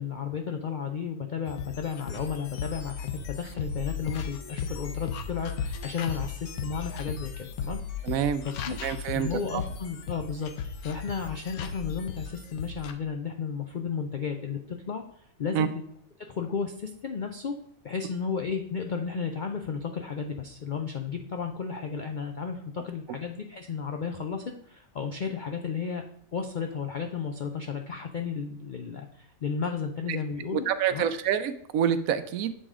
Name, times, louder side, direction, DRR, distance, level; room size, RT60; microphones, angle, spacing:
voice 1, 0.0-8.1 8.4-8.7 9.1-15.7 16.3-17.5 17.8-26.0 26.3-31.1, left 6 dB, 65° left, 4 dB, 0.4 m, -33 dB
sound 1, 1.5-12.9, left 6 dB, 90° left, 1.2 m, -36 dB
voice 2, 8.0-8.5 8.8-9.6 15.5-15.7 30.1-30.2 30.5-32.6, right 9 dB, 75° right, 11 dB, 1.0 m, -27 dB
7.6 x 5.0 x 3.6 m, 0.71 s
omnidirectional pair, 1.5 m